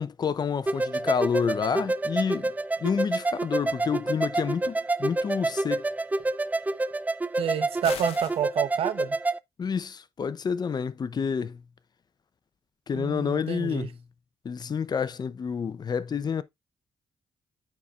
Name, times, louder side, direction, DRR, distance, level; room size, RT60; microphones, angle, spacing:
voice 1, 0.0-2.5 2.8-5.8 9.6-11.6 12.9-14.0 14.4-16.4, left 6 dB, 45° left, 0.6 m, -29 dB
sound 1, 0.7-9.4, right 2 dB, 15° right, 0.4 m, -28 dB
voice 2, 7.4-9.2 12.9-13.9, right 9 dB, 70° right, 0.9 m, -29 dB
sound 2, 7.8-8.4, left 9 dB, 80° left, 0.9 m, -39 dB
9.3 x 4.3 x 2.4 m
cardioid pair, 75°, 10 cm